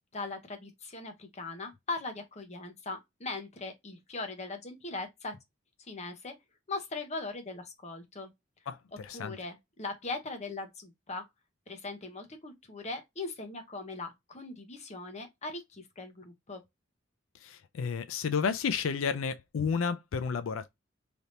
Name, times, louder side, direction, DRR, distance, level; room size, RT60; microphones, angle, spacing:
voice 1, 0.1-5.4 5.9-6.3 6.7-8.3 9.1-11.2 11.7-16.6, left 3 dB, 35° left, 0.8 m, -40 dB
voice 2, 8.7-9.4 17.4-20.7, left 6 dB, 90° left, 0.4 m, -32 dB
3.4 x 2.8 x 2.5 m
head